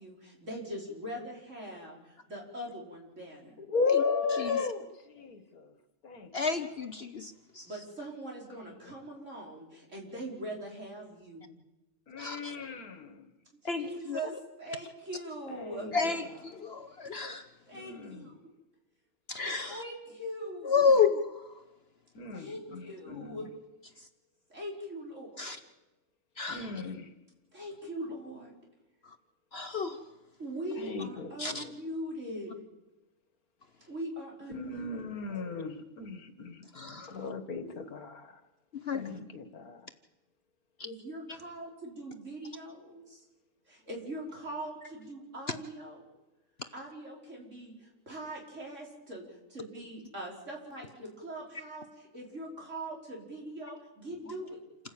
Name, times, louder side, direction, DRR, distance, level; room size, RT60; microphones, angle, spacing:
voice 1, 0.0-3.6 7.6-11.5 13.7-15.9 17.7-18.5 19.7-20.9 22.3-23.5 24.5-25.6 27.5-28.5 30.4-32.6 33.9-35.0 40.8-43.2 43.7-46.1 46.7-54.6, right 1 dB, 55° right, 5.6 m, -41 dB
voice 2, 3.6-5.7 6.0-6.7 8.5-8.7 12.1-13.3 15.5-16.6 17.7-18.3 22.1-23.5 26.5-27.1 30.8-31.7 34.5-38.4 38.9-39.9, left 4 dB, 80° left, 2.2 m, -36 dB
voice 3, 6.3-7.7 12.2-12.6 13.6-14.2 15.9-17.4 19.3-19.8 20.6-21.2 25.4-25.6 26.4-26.6 29.5-30.0 31.4-31.6 36.8-37.1 38.9-39.0, left 5 dB, 50° left, 1.0 m, -30 dB
28.0 x 14.5 x 8.9 m
omnidirectional pair, 1.5 m